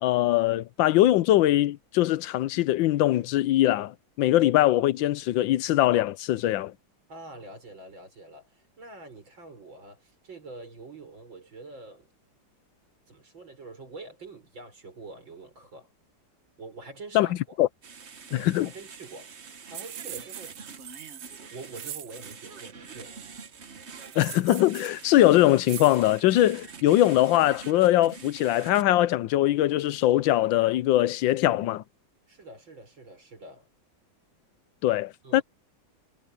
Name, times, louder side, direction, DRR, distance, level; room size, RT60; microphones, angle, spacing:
voice 1, 0.0-6.7 17.1-17.3 17.6-17.7 18.4-18.7 24.2-31.8 34.8-35.4, left 14 dB, 85° left, 1.4 m, -22 dB
voice 2, 7.1-12.1 13.1-15.9 16.6-17.6 18.3-20.6 21.5-23.2 32.3-33.7 35.2-35.4, right 3 dB, 85° right, 7.0 m, -45 dB
sound 1, 17.8-28.8, right 5 dB, 40° right, 1.2 m, -46 dB
sound 2, 19.7-22.4 24.0-25.0 25.7-26.0, right 11 dB, 60° right, 1.0 m, -41 dB
omnidirectional pair, 2.1 m